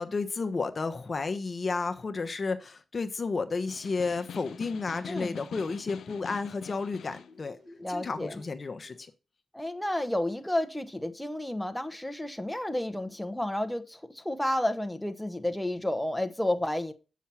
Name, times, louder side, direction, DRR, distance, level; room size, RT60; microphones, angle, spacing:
voice 1, 0.0-7.6 7.9-9.1, left 4 dB, 50° left, 1.0 m, -32 dB
Snare drum, 3.5-7.4, left 7 dB, 85° left, 0.5 m, -45 dB
voice 2, 5.1-5.4 7.8-8.4 9.5-16.9, left 1 dB, 5° left, 1.1 m, -31 dB
sound 1, 5.1-9.1, left 1 dB, 80° right, 5.8 m, -55 dB
7.2 x 5.8 x 5.6 m
cardioid pair, 50°, 0 cm